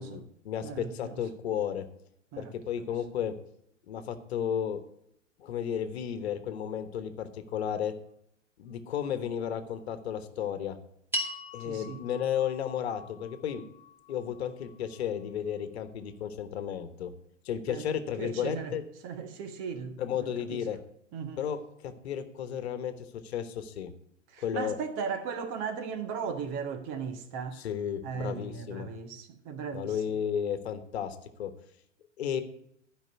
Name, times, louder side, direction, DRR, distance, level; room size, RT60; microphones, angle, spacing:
voice 1, 0.0-1.8 2.4-3.3 3.9-4.8 5.4-7.9 8.6-10.8 11.5-13.6 14.1-17.1 17.4-18.8 20.0-20.8 21.4-22.9 23.2-23.9 24.4-24.8 27.6-28.9 29.7-31.5 32.2-32.4, left 9 dB, 60° left, 1.3 m, -33 dB
voice 2, 0.6-1.2 2.3-2.5 11.6-12.0 17.7-17.8 18.2-18.7 19.0-20.6 21.1-21.4 24.3-27.6 28.0-30.0, right 6 dB, 35° right, 1.3 m, -37 dB
sound 1, 11.1-15.6, equal, 5° right, 2.3 m, -40 dB
12.0 x 5.4 x 8.1 m
figure-of-eight pair, 105°, 37 cm